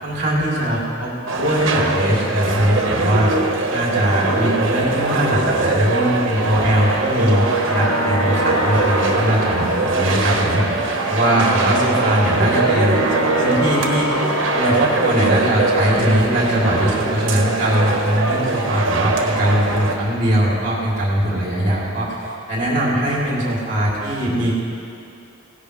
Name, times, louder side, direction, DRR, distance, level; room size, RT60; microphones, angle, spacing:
voice 1, 0.0-3.3 3.7-13.0 13.4-14.1 14.5-24.5, right 1 dB, 40° right, -5 dB, 3.0 m, -20 dB
sound 1, 1.3-20.0, right 2 dB, 80° right, 1.4 m, -21 dB
sound 2, 7.2-18.2, equal, 20° left, 1.5 m, -29 dB
17.0 x 16.5 x 3.3 m, 2.6 s
head